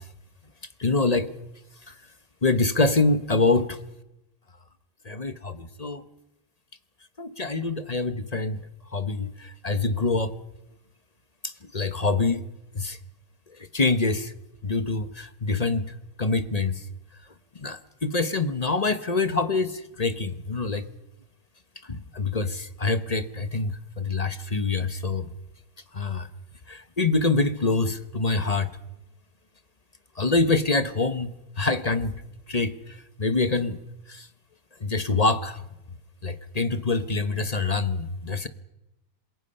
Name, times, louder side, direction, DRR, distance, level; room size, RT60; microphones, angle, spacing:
voice 1, 0.8-1.3 2.4-3.8 5.1-6.0 7.2-8.6 8.9-10.3 11.4-12.4 12.7-13.0 13.7-14.3 14.6-16.8 17.6-20.9 21.9-23.7 24.0-25.3 25.9-26.3 26.7-28.7 30.2-32.1 32.5-32.7 33.2-33.8 34.1-34.3 34.8-35.6 36.2-38.5, left 3 dB, 30° left, 12 dB, 0.9 m, -25 dB
27.5 x 21.5 x 5.6 m, 0.89 s
omnidirectional pair, 1.6 m